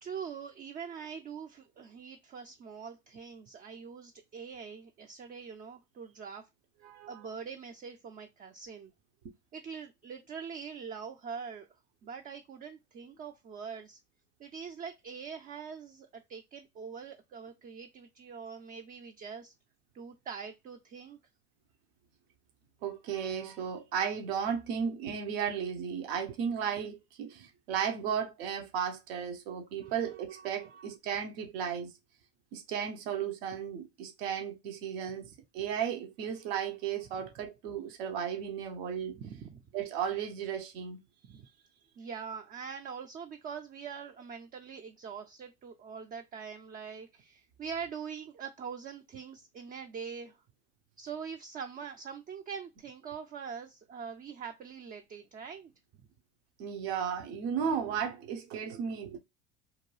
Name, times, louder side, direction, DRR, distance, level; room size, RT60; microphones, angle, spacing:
voice 1, 0.0-6.5 7.1-8.9 9.5-11.7 12.0-14.0 14.4-19.5 19.9-21.2 39.2-39.6 41.2-41.5 42.0-50.4 51.0-55.7, right 6 dB, 30° right, 0.4 m, -43 dB
voice 2, 6.8-7.2 22.8-31.9 32.5-39.2 39.7-41.0 56.6-59.2, right 7 dB, 80° right, 0.8 m, -35 dB
2.7 x 2.2 x 3.1 m
hypercardioid pair, 85°, 32 cm